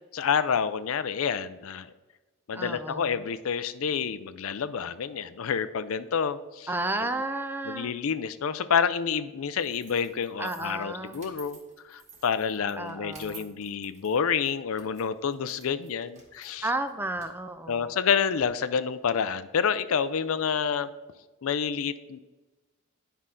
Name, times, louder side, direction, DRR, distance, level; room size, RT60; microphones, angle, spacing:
voice 1, 0.1-1.9 2.5-6.7 7.7-11.6 11.8-16.7 17.7-20.9 21.4-22.2, left 7 dB, 75° left, 13 dB, 0.5 m, -28 dB
voice 2, 2.5-3.2 6.7-8.0 10.4-11.2 12.7-13.5 16.6-17.9, right 2 dB, 10° right, 9 dB, 0.4 m, -32 dB
sound 1, 9.6-18.5, right 4 dB, 35° right, 1.7 m, -53 dB
9.6 x 5.5 x 3.8 m, 1.2 s
head